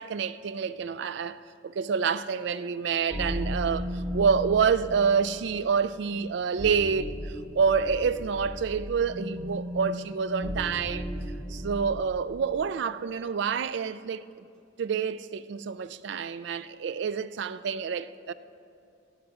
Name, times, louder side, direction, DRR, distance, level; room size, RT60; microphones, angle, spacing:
voice 1, 0.0-11.1 11.5-14.5 14.8-18.3, right 6 dB, 60° right, 0.3 m, -28 dB
sound 1, 3.1-12.3, equal, ahead, 0.7 m, -36 dB
16.0 x 7.2 x 4.8 m
head